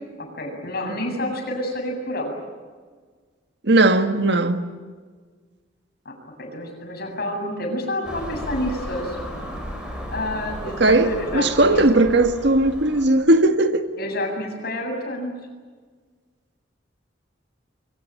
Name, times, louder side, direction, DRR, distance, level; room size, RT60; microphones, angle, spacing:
voice 1, 0.2-2.3 6.0-6.1 6.4-9.2 10.1-11.8 14.0-15.3, left 1 dB, 55° left, 7.8 m, -29 dB
voice 2, 3.6-4.6 10.8-13.9, right 2 dB, 65° right, 1.8 m, -18 dB
Car passing by / Engine, 8.0-13.0, equal, 5° right, 6.7 m, -34 dB
26.0 x 24.0 x 8.8 m
head